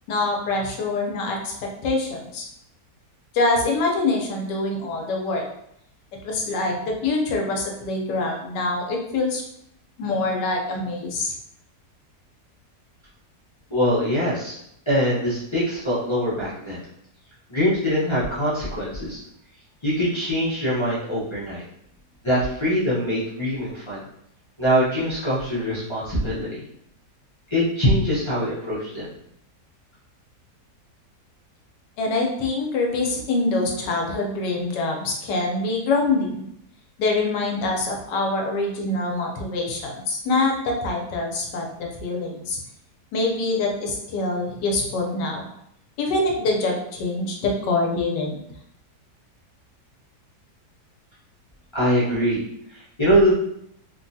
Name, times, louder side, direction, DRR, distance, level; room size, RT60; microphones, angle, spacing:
voice 1, 0.1-2.4 3.3-5.4 6.2-9.4 10.0-11.3 32.0-36.4 37.0-42.6 43.1-45.4 46.0-48.4, left 2 dB, 90° left, 1 dB, 1.3 m, -25 dB
voice 2, 13.7-14.6 14.9-16.8 17.5-19.2 19.8-21.6 22.2-24.0 24.6-26.5 27.5-29.1 51.7-52.4 52.7-53.3, equal, 30° left, -10 dB, 0.5 m, -23 dB
3.5 x 2.2 x 2.6 m, 0.74 s
omnidirectional pair, 1.8 m